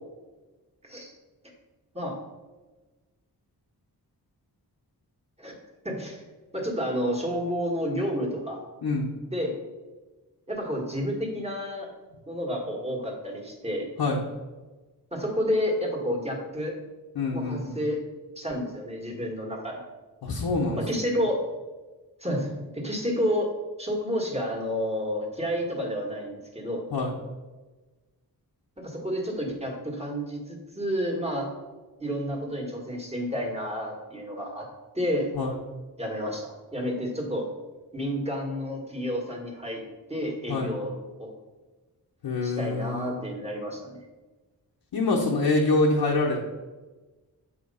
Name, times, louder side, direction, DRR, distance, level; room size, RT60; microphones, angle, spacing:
voice 1, 5.8-6.2 6.5-8.6 9.3-9.6 10.5-11.9 12.3-13.9 15.1-16.7 17.3-18.0 18.4-19.8 20.7-21.4 22.2-23.5 23.8-26.8 28.8-31.5 32.0-34.7 34.9-35.3 36.0-37.5 37.9-39.8 40.1-40.9 41.2-41.3 42.4-44.0, equal, 15° right, -1 dB, 1.5 m, -30 dB
voice 2, 17.1-17.8 20.2-21.0 26.9-27.1 35.3-35.6 40.5-40.7 42.2-43.1 44.9-46.4, left 3 dB, 75° left, -3 dB, 0.9 m, -25 dB
7.8 x 2.8 x 5.4 m, 1.2 s
wide cardioid pair, 80°, 39 cm